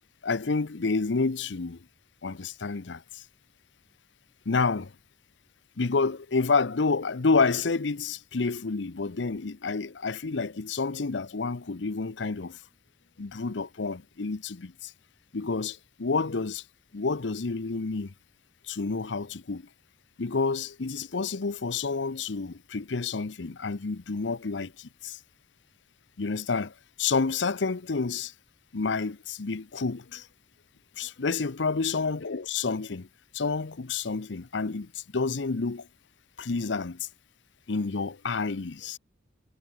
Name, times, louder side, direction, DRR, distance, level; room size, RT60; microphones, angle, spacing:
voice 1, 0.2-1.8 2.2-3.2 4.5-4.9 5.8-12.6 13.2-14.9 15.3-16.6 16.9-18.1 18.7-19.6 20.2-25.2 26.2-28.3 28.7-30.3 31.0-33.1 33.3-35.9 36.4-37.1 37.7-39.0, left 4 dB, 75° left, 0.8 m, -29 dB
head